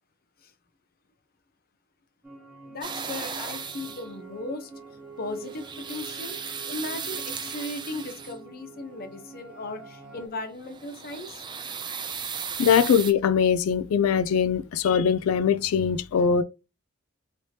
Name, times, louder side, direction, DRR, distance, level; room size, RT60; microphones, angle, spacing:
sound 1, 2.2-10.3, right 3 dB, 5° right, 0.8 m, -46 dB
voice 1, 2.6-4.7 5.2-6.4 6.7-11.4, left 2 dB, 45° left, 0.7 m, -37 dB
sound 2, 2.8-4.1 5.3-8.5 10.5-13.1, right 6 dB, 20° right, 0.4 m, -36 dB
voice 2, 12.6-16.4, left 7 dB, 85° left, 0.3 m, -22 dB
3.3 x 2.9 x 2.7 m
head